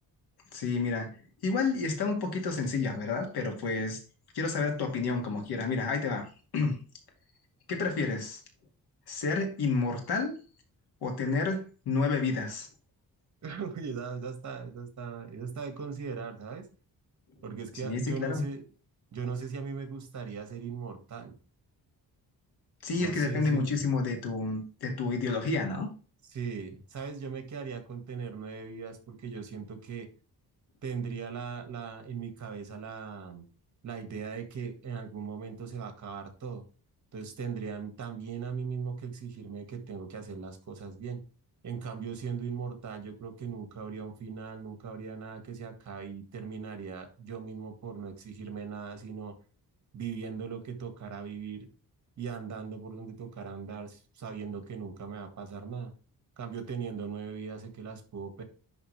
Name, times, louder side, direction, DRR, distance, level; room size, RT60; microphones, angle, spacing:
voice 1, 0.5-1.2 1.4-4.0 4.3-6.3 6.5-6.8 7.7-8.4 9.1-10.4 11.0-12.7 17.8-18.4 22.8-25.9, left 4 dB, 85° left, 2.2 m, -30 dB
voice 2, 13.4-16.7 17.4-18.6 19.1-21.4 23.0-23.8 26.3-30.1 30.8-33.5 33.8-36.6 37.1-41.2 41.6-49.3 49.9-51.7 52.2-55.9 56.4-58.4, right 6 dB, 50° right, 1.8 m, -39 dB
10.5 x 3.7 x 3.2 m
wide cardioid pair, 145°, 37 cm